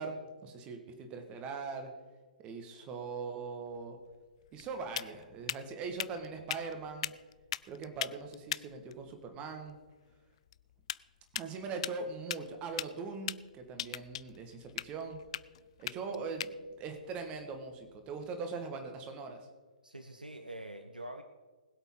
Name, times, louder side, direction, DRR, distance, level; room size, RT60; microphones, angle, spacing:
voice 1, 0.0-1.9 2.4-4.0 4.5-7.1 7.6-9.8 11.3-15.2 15.8-19.5, right 4 dB, 25° right, 5 dB, 2.0 m, -41 dB
sound 1, 3.7-18.4, left 12 dB, 45° left, 0.3 m, -43 dB
voice 2, 19.8-21.2, right 1 dB, 85° right, 7 dB, 1.0 m, -45 dB
20.5 x 8.2 x 3.9 m, 1.4 s
figure-of-eight pair, 120°, 4 cm